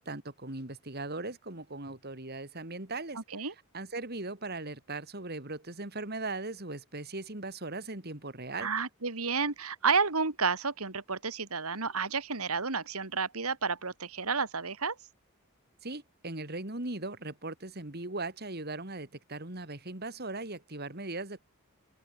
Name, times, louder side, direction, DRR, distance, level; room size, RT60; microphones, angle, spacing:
voice 1, 0.0-8.7 15.8-21.4, right 2 dB, 45° right, 2.9 m, -39 dB
voice 2, 8.6-14.9, right 5 dB, 75° right, 2.6 m, -31 dB
open air
head